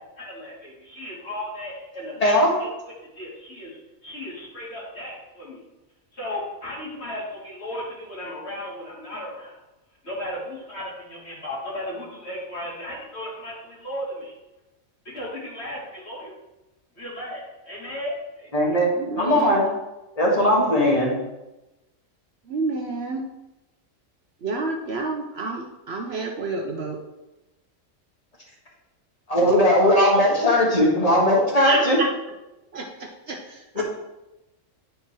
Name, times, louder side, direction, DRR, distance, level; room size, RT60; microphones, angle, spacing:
voice 1, 0.2-2.7 3.1-5.6 6.1-9.6 10.0-14.3 15.0-16.3 17.0-18.7, left 1 dB, 50° left, -6 dB, 2.9 m, -35 dB
voice 2, 2.2-2.5 18.5-18.9 19.2-19.7 20.2-21.1 29.3-32.0 33.8-33.9, left 1 dB, 30° left, -2 dB, 1.9 m, -18 dB
voice 3, 19.0-19.6 22.5-23.2 24.4-27.0 29.4-29.5 31.6-32.1 32.7-33.8, right 3 dB, 55° right, 2 dB, 0.9 m, -29 dB
10.0 x 4.4 x 4.6 m, 0.98 s
omnidirectional pair, 1.4 m